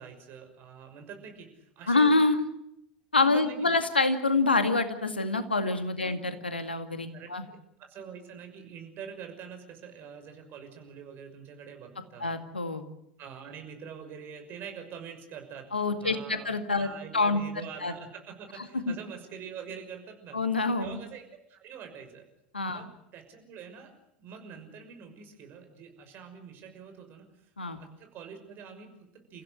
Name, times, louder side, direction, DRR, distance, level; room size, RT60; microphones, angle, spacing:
voice 1, 0.0-2.2 3.2-3.8 6.0-6.1 7.1-7.4 7.8-12.3 13.2-15.7 16.0-16.5 16.8-20.4 20.8-21.2 21.5-22.2 22.7-23.9 24.2-29.4, right 7 dB, 40° right, 5 dB, 6.0 m, -45 dB
voice 2, 1.9-2.5 3.1-7.4 12.2-12.8 15.7-17.9 18.9-19.0 20.3-21.0 22.5-22.9 27.6-27.8, left 3 dB, 85° left, 9 dB, 2.1 m, -26 dB
29.5 x 16.0 x 8.0 m, 0.81 s
figure-of-eight pair, 80°, 5 cm